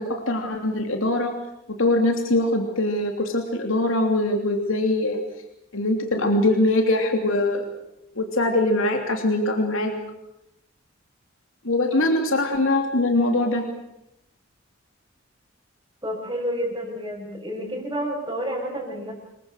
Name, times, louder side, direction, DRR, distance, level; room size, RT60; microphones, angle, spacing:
voice 1, 0.0-1.3 1.7-5.2 5.7-7.6 8.1-9.9 11.6-13.6, left 2 dB, 75° left, 3 dB, 3.1 m, -22 dB
voice 2, 16.0-19.2, equal, 20° right, -5 dB, 6.2 m, -29 dB
27.5 x 22.5 x 6.6 m, 0.85 s
head